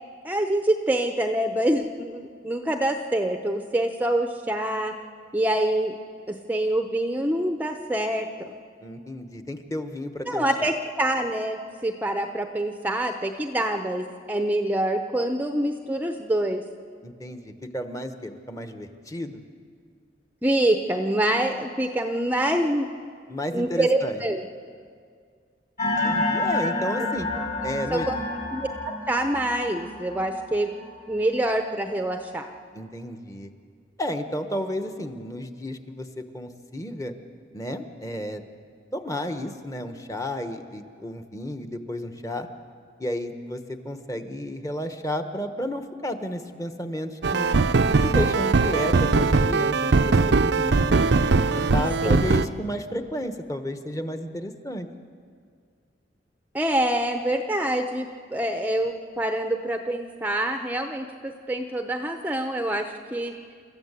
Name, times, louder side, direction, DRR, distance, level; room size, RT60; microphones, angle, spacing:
voice 1, 0.2-4.9 5.3-6.0 6.3-8.5 10.3-16.6 20.4-22.9 23.5-24.4 27.9-28.2 28.5-30.7 31.1-32.5 52.0-52.2 56.5-63.3, right 1 dB, 10° right, 5 dB, 0.7 m, -26 dB
voice 2, 8.8-10.7 17.0-19.4 23.3-24.2 25.8-27.3 27.6-28.1 32.7-33.5 34.0-37.1 37.5-38.4 38.9-42.5 43.0-47.5 47.9-51.0 51.5-54.9, left 1 dB, 20° left, 7 dB, 1.1 m, -32 dB
sound 1, 25.8-31.4, left 2 dB, 45° left, 5.0 m, -29 dB
sound 2, 47.2-52.5, right 3 dB, 65° right, 0.6 m, -20 dB
27.5 x 14.0 x 8.2 m, 2.1 s
head